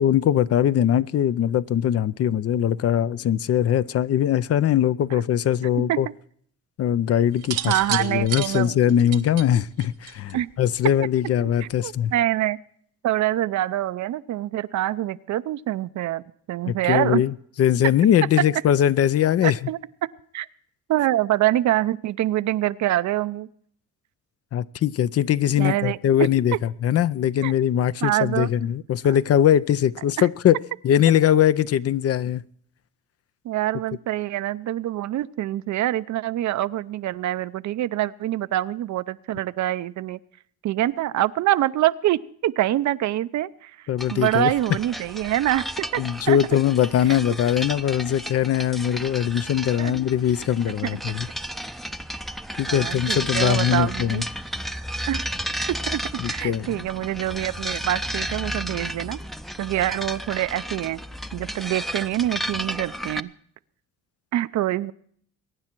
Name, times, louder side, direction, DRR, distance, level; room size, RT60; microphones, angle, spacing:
voice 1, 0.0-6.1 6.8-12.1 16.7-19.7 24.5-26.5 26.8-32.4 43.9-44.5 46.0-51.3 52.6-54.2 56.2-56.8, left 10 dB, 50° left, 0.5 m, -21 dB
sound 1, 7.4-10.5 11.6-12.0, right 12 dB, 90° right, 1.3 m, -31 dB
voice 2, 7.7-8.9 10.3-10.5 11.6-12.6 13.0-16.2 16.5-17.2 19.4-19.8 20.3-20.5 20.9-23.5 25.6-26.0 27.4-27.5 28.0-28.5 30.2-30.3 33.4-40.2 40.6-43.8 44.1-46.0 46.3-46.4 49.8-49.9 50.8-51.2 52.7-54.2 55.1-55.2 55.7-59.2 59.6-61.0 61.3-63.3 64.3-64.9, right 14 dB, 70° right, 0.6 m, -25 dB
sound 2, 44.0-63.2, equal, ahead, 0.5 m, -33 dB
22.5 x 9.7 x 4.5 m
cardioid pair, 90°, 30 cm